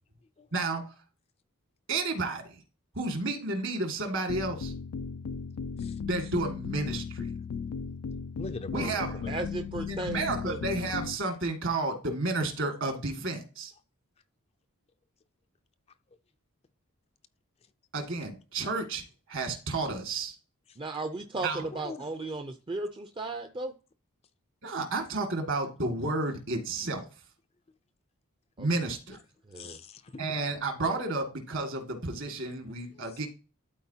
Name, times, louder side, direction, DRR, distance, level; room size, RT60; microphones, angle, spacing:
voice 1, 0.5-0.8 1.9-2.6 3.0-4.7 6.1-7.3 8.7-9.2 9.9-13.7 17.9-19.0 19.3-20.3 21.4-21.6 24.6-27.0 28.6-29.2 30.2-33.3, right 3 dB, 60° right, 2.0 m, -31 dB
sound 1, 4.3-11.2, left 6 dB, 90° left, 0.4 m, -36 dB
voice 2, 8.4-9.0 21.7-22.0 24.8-24.9 29.6-30.2 32.9-33.0, left 3 dB, 30° left, 0.4 m, -41 dB
voice 3, 9.3-10.6 20.8-23.7 28.6-28.9 29.5-29.8, right 2 dB, 25° right, 0.5 m, -35 dB
12.0 x 4.3 x 2.8 m
head